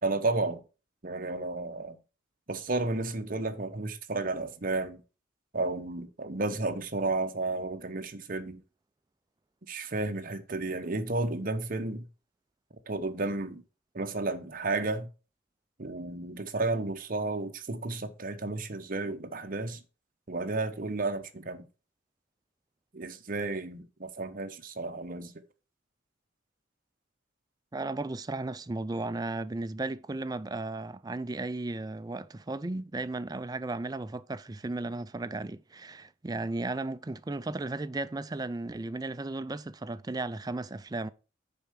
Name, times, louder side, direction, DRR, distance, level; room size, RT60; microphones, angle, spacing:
voice 1, 0.0-0.6 1.0-2.0 2.5-5.0 5.5-8.6 9.7-12.1 12.9-13.6 13.9-15.1 15.8-19.8 20.3-21.7 22.9-25.3, right 2 dB, 45° right, 0.9 m, -32 dB
voice 2, 27.7-41.1, right 2 dB, 20° right, 0.4 m, -35 dB
6.9 x 4.7 x 6.4 m
head